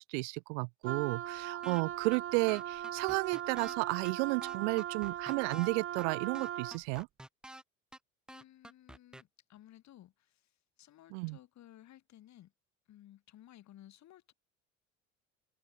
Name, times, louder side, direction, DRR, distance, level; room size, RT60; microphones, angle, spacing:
voice 1, 0.0-7.1 11.1-11.4, right 35 dB, 60° right, 0.6 m, -33 dB
Wind instrument woodwind instrument, 0.8-6.8, right 11 dB, 35° right, 0.9 m, -39 dB
sound 1, 1.6-1.8 2.1-2.2 2.5-3.7 4.0-4.1 4.4-5.7 6.0-6.1 6.3-7.6 7.9-8.0 8.3-9.2, right 1 dB, ahead, 0.4 m, -49 dB
voice 2, 8.3-10.5 10.8-12.5 12.9-14.3, left 13 dB, 45° left, 2.4 m, -57 dB
hypercardioid pair, 65°, 38 cm